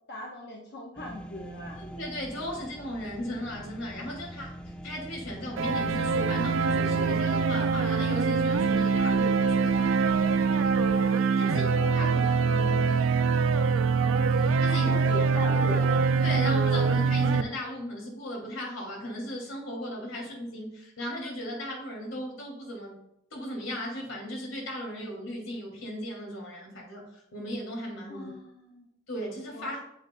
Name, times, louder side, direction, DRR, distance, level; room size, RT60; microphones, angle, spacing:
voice 1, 0.1-1.8 11.4-13.1 14.7-16.0 28.1-28.9 29.5-29.8, left 1 dB, 55° left, -2 dB, 0.9 m, -39 dB
sound 1, 1.0-11.1, equal, 5° left, 0.5 m, -42 dB
voice 2, 1.8-4.5 4.8-10.1 11.4-11.6 11.9-12.4 14.6-14.9 16.2-23.0 23.3-28.3 29.1-29.8, equal, 90° left, -1 dB, 2.4 m, -36 dB
sound 2, 5.6-17.4, right 5 dB, 90° right, 0.5 m, -24 dB
7.8 x 7.7 x 2.2 m, 0.76 s
head